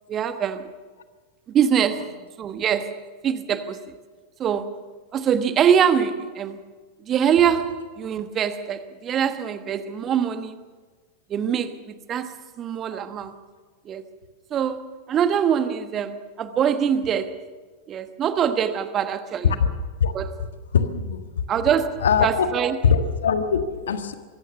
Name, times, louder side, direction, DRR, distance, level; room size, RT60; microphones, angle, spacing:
voice 1, 0.1-0.7 1.5-3.9 4.4-4.8 5.1-6.6 7.0-10.6 11.3-13.4 13.8-14.0 14.5-17.4 17.9-19.5 20.1-20.3 21.5-22.8, right 8 dB, 30° right, 11 dB, 1.2 m, -24 dB
voice 2, 20.7-21.2 22.0-22.5 22.8-24.1, left 6 dB, 65° left, 9 dB, 1.5 m, -21 dB
23.5 x 16.0 x 7.0 m, 1.4 s
figure-of-eight pair, 90°, 0 cm